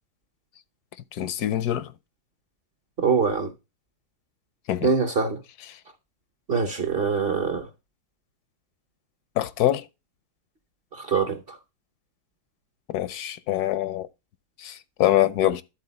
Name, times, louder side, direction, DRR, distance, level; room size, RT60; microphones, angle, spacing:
voice 1, 1.1-1.9 4.7-4.9 9.4-9.8 12.9-14.1 14.6-15.6, left 13 dB, 75° left, 1.1 m, -24 dB
voice 2, 3.0-3.5 4.8-5.4 6.5-7.7 10.9-11.4, right 5 dB, 45° right, 0.8 m, -23 dB
11.5 x 4.2 x 4.0 m
omnidirectional pair, 1.8 m